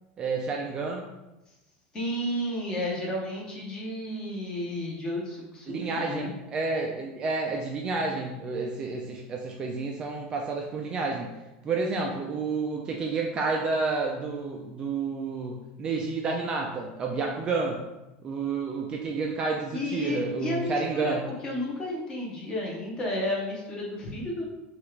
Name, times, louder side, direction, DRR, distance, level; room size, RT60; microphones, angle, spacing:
voice 1, 0.2-1.0 5.7-11.3 11.6-17.8 18.2-21.2, right 4 dB, 20° right, 0 dB, 0.3 m, -30 dB
voice 2, 1.9-6.3 19.7-24.4, left 1 dB, 20° left, -2 dB, 0.8 m, -32 dB
6.2 x 2.4 x 3.1 m, 1.0 s
cardioid pair, 180°, 4 cm